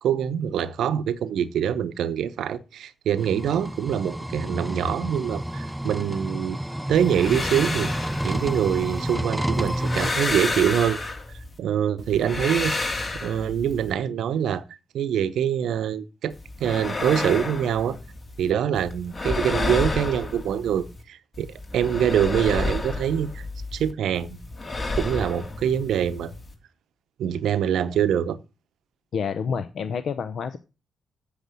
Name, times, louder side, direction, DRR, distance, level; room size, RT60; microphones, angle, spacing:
voice 1, 0.0-6.6 6.9-7.9 8.2-11.0 11.6-12.9 13.2-14.6 14.9-16.3 16.6-18.0 18.4-23.5 23.7-24.4 25.0-26.3 27.2-28.4, right 9 dB, 75° right, 0.7 m, -24 dB
sound 1, 3.2-10.1, right 1 dB, 10° right, 0.4 m, -30 dB
sound 2, 7.0-9.1 9.6-11.6 12.0-13.9 16.3-18.5 18.8-21.0 21.3-23.9 24.2-26.5, left 2 dB, 40° left, 2.6 m, -30 dB
voice 2, 29.1-30.6, left 6 dB, 65° left, 0.7 m, -28 dB
8.1 x 6.5 x 7.5 m
hypercardioid pair, 45°, 0 cm